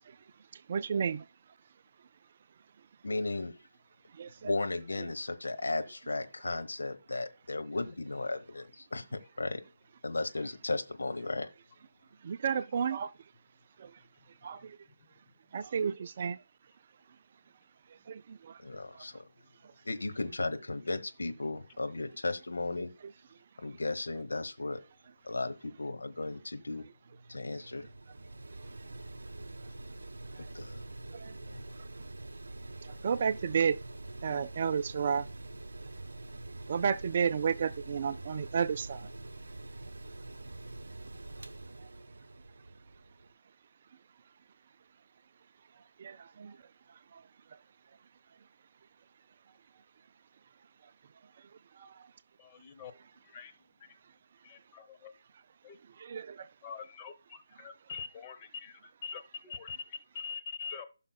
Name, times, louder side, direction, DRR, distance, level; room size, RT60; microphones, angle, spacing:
voice 1, 0.5-1.3 4.1-4.5 12.2-13.1 13.8-14.0 14.4-14.8 15.5-16.4 18.1-18.6 18.9-19.0 30.4-30.5 31.1-31.4 31.8-31.9 32.8-33.8 34.2-35.3 36.7-39.1 46.0-46.6 47.1-47.2 51.8-52.1 56.0-56.5, right 7 dB, 35° right, 0.3 m, -32 dB
voice 2, 3.0-3.5 4.4-9.6 10.0-11.5 18.6-19.2 19.8-22.9 23.6-24.8 25.2-26.9 27.3-27.8 30.5-30.8 31.5-31.6, left 2 dB, 60° left, 1.1 m, -35 dB
Mechanical fan, 27.0-43.3, right 2 dB, 65° right, 0.7 m, -45 dB
voice 3, 52.4-52.9 53.2-53.5 54.4-55.1 55.6-55.8 56.6-60.9, left 6 dB, 20° left, 0.9 m, -44 dB
16.0 x 5.7 x 2.2 m
figure-of-eight pair, 150°, 0 cm